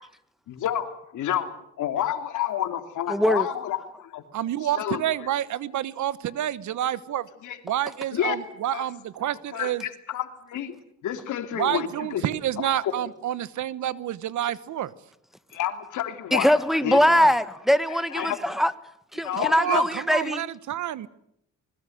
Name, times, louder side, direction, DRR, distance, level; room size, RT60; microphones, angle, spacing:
voice 1, 0.5-4.2 4.6-5.0 7.4-7.6 8.1-8.4 8.7-8.9 9.5-10.8 11.0-12.2 12.6-12.9 15.5-17.3 17.9-18.4 19.2-19.8 20.2-20.3, left 11 dB, 80° left, 2.8 m, -30 dB
voice 2, 3.1-3.4 16.3-18.7 19.1-20.4, equal, ahead, 1.5 m, -22 dB
voice 3, 4.3-7.3 7.6-9.8 11.6-14.9 17.1-17.3 19.4-21.1, right 12 dB, 70° right, 1.2 m, -28 dB
25.0 x 21.0 x 7.9 m
cardioid pair, 90°, 30 cm